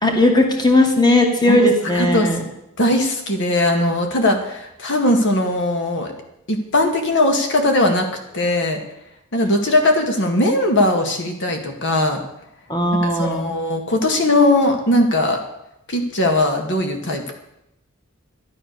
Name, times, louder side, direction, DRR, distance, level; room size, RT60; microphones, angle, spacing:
voice 1, 0.0-2.4 12.7-13.5, left 1 dB, 20° left, 3 dB, 2.2 m, -17 dB
voice 2, 1.5-2.4 2.8-6.1 6.5-8.1 8.3-8.8 9.3-12.2 13.0-15.4 15.9-17.3, left 1 dB, 60° left, 4 dB, 2.1 m, -19 dB
12.5 x 12.0 x 6.7 m, 0.83 s
head